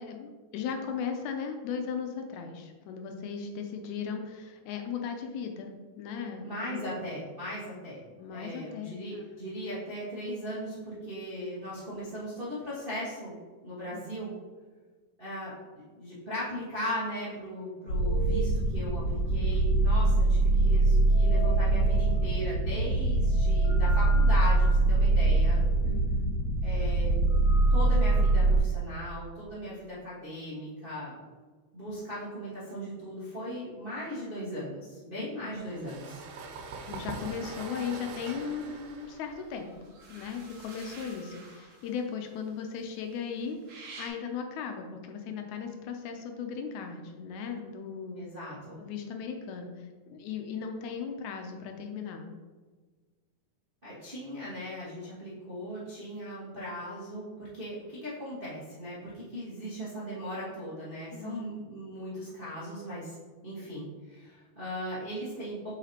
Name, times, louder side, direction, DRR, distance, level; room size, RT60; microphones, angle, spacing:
voice 1, 0.0-6.8 8.1-9.2 13.9-14.3 25.8-26.3 35.2-35.6 36.8-48.2 48.8-52.3 61.1-61.6, left 6 dB, 80° left, 4 dB, 2.0 m, -37 dB
voice 2, 6.4-13.3 13.6-14.3 15.2-15.5 16.0-25.6 26.6-27.2 27.7-31.2 31.7-36.2 48.1-48.8 53.8-63.2 63.4-65.8, equal, 40° right, -9 dB, 0.7 m, -38 dB
sound 1, 17.9-28.6, right 2 dB, 60° left, 2.0 m, -23 dB
sound 2, 35.6-41.1, right 4 dB, 85° right, 2.2 m, -43 dB
sound 3, 38.7-43.1 43.4-44.1, right 3 dB, 60° right, 1.4 m, -50 dB
7.0 x 4.9 x 2.9 m, 1.4 s
omnidirectional pair, 3.5 m